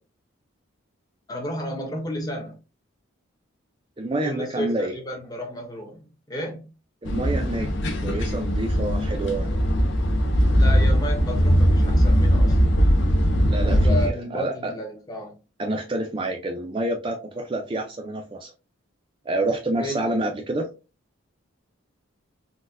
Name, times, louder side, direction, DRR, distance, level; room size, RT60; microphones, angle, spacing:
voice 1, 1.3-2.6 4.2-6.7 10.5-12.6 13.6-15.4 19.8-20.0, equal, 20° left, 0.7 m, -32 dB
voice 2, 4.0-4.9 7.0-7.7 8.0-9.6 13.5-14.7 15.6-18.5 19.3-20.7, right 2 dB, 25° right, 0.3 m, -28 dB
sound 1, 7.0-14.1, equal, 60° left, 0.6 m, -20 dB
3.9 x 2.1 x 2.4 m
head